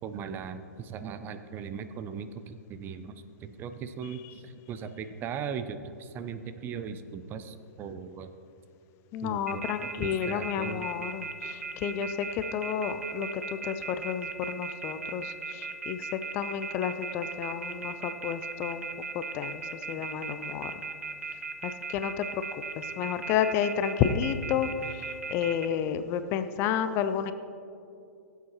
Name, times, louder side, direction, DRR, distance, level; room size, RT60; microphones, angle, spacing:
voice 1, 0.0-8.3 9.2-10.9, right 6 dB, 25° right, 10 dB, 0.5 m, -38 dB
voice 2, 9.1-18.9 19.1-20.9 21.3-22.4 22.8-27.3, left 8 dB, 30° left, 11 dB, 0.5 m, -31 dB
sound 1, 9.5-25.7, right 4 dB, 75° right, 0.8 m, -37 dB
16.5 x 8.0 x 3.0 m, 2.6 s
figure-of-eight pair, 110°, 8 cm